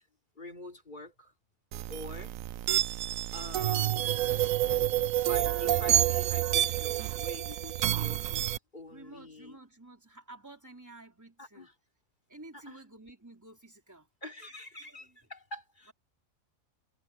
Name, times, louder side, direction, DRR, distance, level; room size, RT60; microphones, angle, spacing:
voice 1, 0.4-1.3 1.9-2.3 3.3-4.1 5.1-9.6 11.4-11.7 12.5-12.8 14.2-15.9, left 1 dB, 35° left, 3.4 m, -46 dB
sound 1, 1.7-8.6, right 13 dB, 75° right, 1.0 m, -28 dB
voice 2, 8.9-11.7 12.3-14.1 14.8-15.2, right 2 dB, 10° right, 3.6 m, -51 dB
omnidirectional pair, 1.4 m